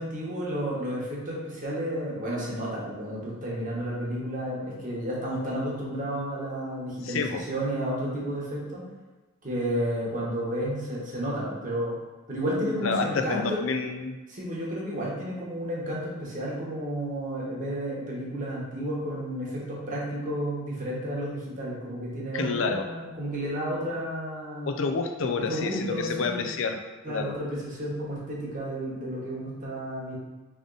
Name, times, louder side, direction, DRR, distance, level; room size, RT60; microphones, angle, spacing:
voice 1, 0.0-8.8 9.4-11.9 12.3-13.6 14.3-24.7 25.4-26.5 27.0-30.2, equal, 40° right, -5 dB, 1.2 m, -32 dB
voice 2, 7.0-7.4 12.8-14.2 22.3-22.9 24.7-27.4, left 4 dB, 85° left, 5 dB, 0.5 m, -29 dB
3.7 x 3.5 x 3.9 m, 1.2 s
head